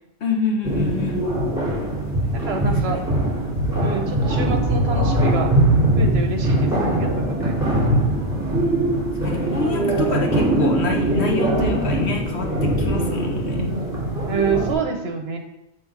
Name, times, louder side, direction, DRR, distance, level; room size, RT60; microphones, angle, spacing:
voice 1, 0.2-1.2 2.6-3.1 9.1-13.7, left 4 dB, 55° left, 2 dB, 1.2 m, -27 dB
sound 1, 0.6-14.7, right 1 dB, 15° right, 2.2 m, -21 dB
voice 2, 2.3-3.0 3.8-5.5 5.9-7.7 12.8-12.9 14.3-15.4, right 5 dB, 55° right, 4 dB, 0.9 m, -27 dB
7.0 x 3.4 x 5.8 m, 0.88 s
omnidirectional pair, 1.3 m